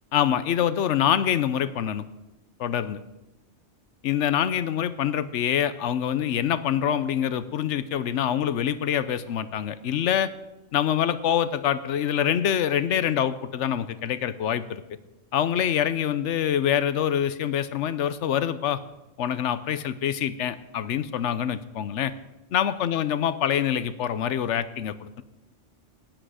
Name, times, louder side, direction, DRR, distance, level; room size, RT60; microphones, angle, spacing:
voice 1, 0.1-2.0 2.6-3.0 4.0-10.3 10.7-14.8 15.3-18.8 19.2-22.1 22.5-25.2, left 9 dB, 75° left, 14 dB, 1.0 m, -25 dB
15.0 x 10.0 x 4.9 m, 1.0 s
omnidirectional pair, 1.3 m